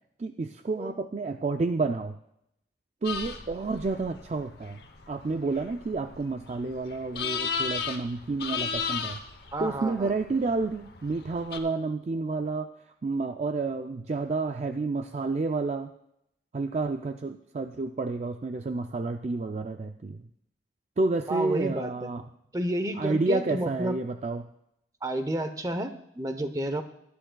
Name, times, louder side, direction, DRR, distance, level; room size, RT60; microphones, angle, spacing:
voice 1, 0.2-2.2 3.0-4.8 5.1-9.2 9.6-12.7 13.0-15.9 16.5-20.2 21.0-22.2 23.0-24.5, right 3 dB, 40° right, 7 dB, 0.4 m, -30 dB
sound 1, 3.0-11.6, left 6 dB, 60° left, 0.9 m, -36 dB
voice 2, 9.5-10.1 21.3-21.9 22.5-23.9 25.0-26.8, right 1 dB, 20° right, 9 dB, 0.8 m, -30 dB
19.5 x 11.5 x 2.3 m, 0.78 s
head